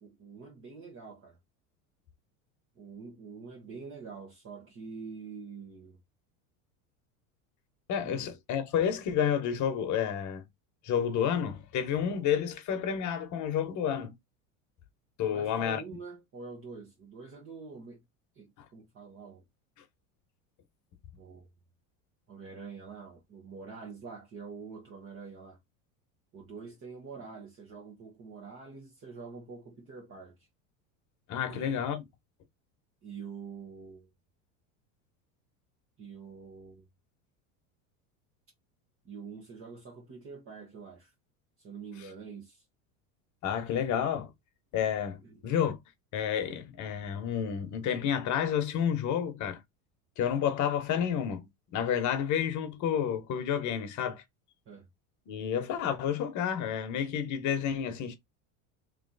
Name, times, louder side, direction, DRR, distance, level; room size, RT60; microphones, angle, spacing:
voice 1, 0.0-1.4 2.7-6.0 8.0-8.3 15.3-18.0 18.3-19.4 21.2-21.5 22.3-25.6 26.3-30.4 31.5-31.8 33.0-34.1 36.0-36.9 39.0-41.1 41.6-42.6 45.2-45.4 54.6-54.9, right 5 dB, 30° right, 1.3 m, -46 dB
voice 2, 7.9-10.5 10.8-14.1 15.2-15.8 31.3-32.0 43.4-44.3 44.7-45.8 46.1-49.6 50.2-54.2 55.3-58.1, left 8 dB, 45° left, 1.2 m, -30 dB
3.2 x 3.0 x 4.0 m
supercardioid pair, 120°, 41 cm